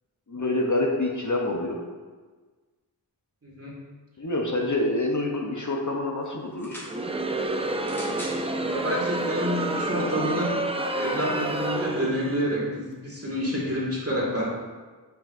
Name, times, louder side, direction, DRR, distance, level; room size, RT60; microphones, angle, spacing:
voice 1, 0.3-1.8 4.2-6.8, left 2 dB, 45° left, 0 dB, 0.7 m, -27 dB
voice 2, 3.4-3.8 8.7-10.5 10.9-14.5, equal, 30° right, -5 dB, 1.8 m, -28 dB
sound 1, 6.5-7.0 7.8-8.4 9.3-9.4, equal, 5° left, 1.3 m, -40 dB
Crowd, 6.8-12.5, right 2 dB, 15° right, 0.4 m, -29 dB
7.5 x 5.6 x 2.5 m, 1.4 s
wide cardioid pair, 55°, 44 cm